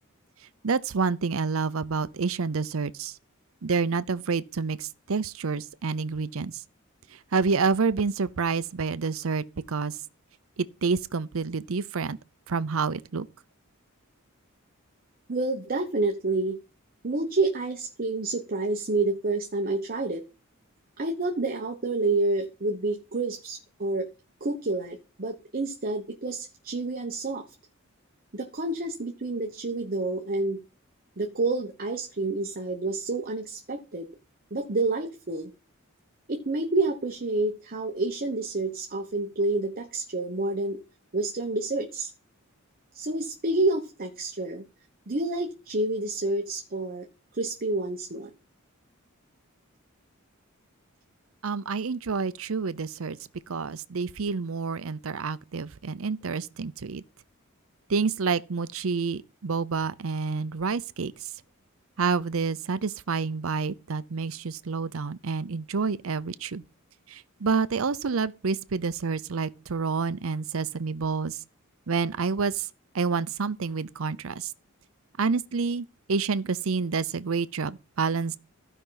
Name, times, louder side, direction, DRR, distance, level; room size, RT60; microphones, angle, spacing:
voice 1, 0.6-3.2 3.6-6.6 7.3-9.9 10.6-12.2 12.5-13.3 51.4-53.2 53.5-57.0 57.9-61.1 62.0-66.6 67.1-71.4 71.9-72.7 72.9-74.5 75.2-78.4, right 5 dB, 70° right, 0.6 m, -28 dB
voice 2, 15.3-16.6 17.0-20.2 21.0-24.1 24.4-27.5 28.3-30.6 31.2-34.1 34.5-35.5 36.3-40.8 41.1-42.1 42.9-44.6 45.1-47.1 47.3-48.3, right 2 dB, 45° right, 1.0 m, -28 dB
15.0 x 5.5 x 3.9 m
head